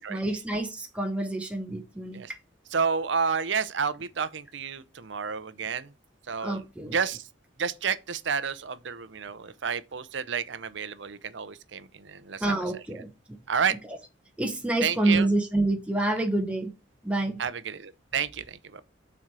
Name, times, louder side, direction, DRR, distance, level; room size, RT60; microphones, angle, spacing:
voice 1, 0.0-2.4 6.4-6.9 12.4-13.4 14.4-16.7 17.0-17.4, right 2 dB, 5° right, 0.9 m, -28 dB
voice 2, 2.7-5.9 6.3-6.6 6.9-7.3 7.6-12.4 13.5-13.8 14.8-15.3 17.4-18.8, right 6 dB, 70° right, 0.6 m, -30 dB
7.4 x 4.4 x 4.7 m
head